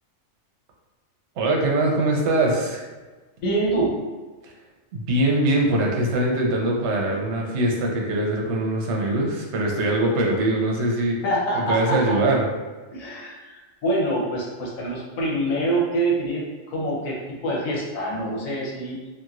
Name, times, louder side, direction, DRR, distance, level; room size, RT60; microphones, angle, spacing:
voice 1, 1.4-2.8 4.4-4.5 4.9-11.2 11.5-12.5, right 1 dB, 65° right, -1 dB, 0.9 m, -22 dB
voice 2, 3.4-3.9 11.2-12.1 12.9-17.2 17.4-19.0, right 1 dB, 80° left, -4 dB, 1.2 m, -25 dB
2.9 x 2.6 x 2.4 m, 1.3 s
omnidirectional pair, 1.4 m